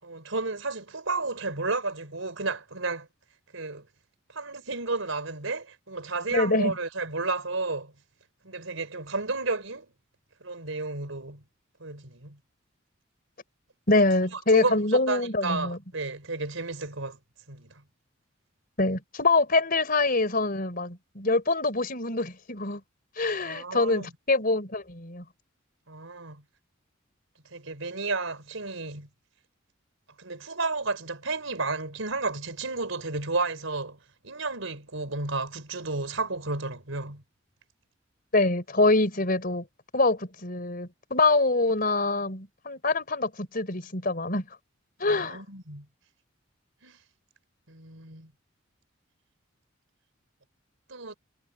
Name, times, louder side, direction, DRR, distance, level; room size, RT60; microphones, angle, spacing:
voice 1, 0.0-3.1 3.5-3.9 4.3-7.9 8.4-9.9 10.4-11.4 11.8-12.4 14.3-17.2 17.5-17.8 23.4-24.1 25.9-26.4 27.5-29.1 30.2-34.0 34.2-37.2 45.0-45.9 46.8-47.0 47.7-48.3 50.9-51.1, right 3 dB, 85° right, 4.2 m, -32 dB
voice 2, 6.3-6.7 13.9-15.8 18.8-22.8 23.2-25.2 38.3-39.7 39.9-44.5 45.0-45.4, left 2 dB, 45° left, 4.2 m, -25 dB
head